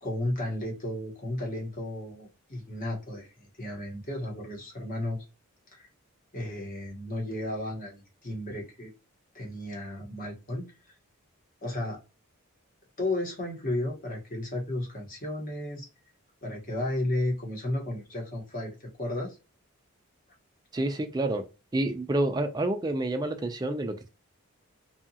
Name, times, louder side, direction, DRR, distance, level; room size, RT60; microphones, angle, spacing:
voice 1, 0.0-5.2 5.7-5.9 6.3-8.9 9.3-10.6 11.6-12.0 13.0-15.9 16.4-19.4, left 1 dB, 40° left, 1.0 m, -33 dB
voice 2, 20.7-21.4 21.7-24.1, right 2 dB, 20° right, 0.3 m, -28 dB
2.7 x 2.3 x 2.7 m
head